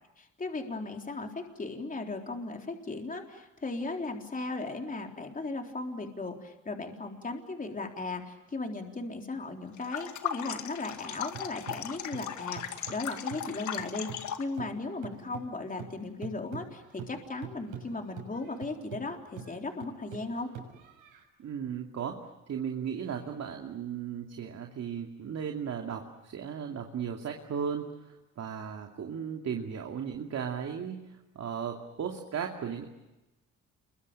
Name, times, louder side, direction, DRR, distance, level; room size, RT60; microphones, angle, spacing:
voice 1, 0.2-20.5, left 3 dB, 25° left, 3 dB, 3.9 m, -37 dB
sound 1, 9.8-14.5, left 9 dB, 70° left, 2.0 m, -37 dB
sound 2, 10.9-14.3 14.6-21.2, right 7 dB, 90° right, 6.5 m, -45 dB
voice 2, 21.4-22.2 22.5-32.9, right 7 dB, 60° right, 2 dB, 2.7 m, -36 dB
28.5 x 23.5 x 8.9 m, 1.0 s
cardioid pair, 90°, 30 cm